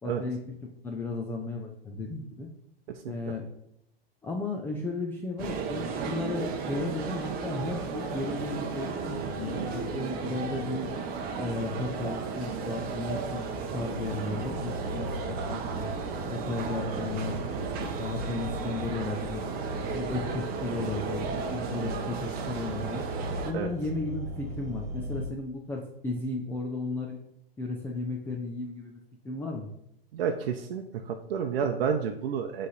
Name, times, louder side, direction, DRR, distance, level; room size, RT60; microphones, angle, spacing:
voice 1, 0.0-2.5 3.1-3.5 4.2-10.9 11.4-13.5 13.7-15.9 16.3-17.4 17.8-19.4 19.9-23.0 23.5-27.2 27.6-29.0 29.2-29.7, left 3 dB, 5° left, 0 dB, 0.4 m, -34 dB
sound 1, 5.4-23.5, right 5 dB, 30° right, 0.8 m, -34 dB
sound 2, 14.5-25.3, right 1 dB, 50° right, 1.4 m, -40 dB
voice 2, 30.1-32.7, right 7 dB, 70° right, 4 dB, 0.7 m, -30 dB
7.9 x 3.3 x 4.0 m, 0.77 s
hypercardioid pair, 125°, 30 cm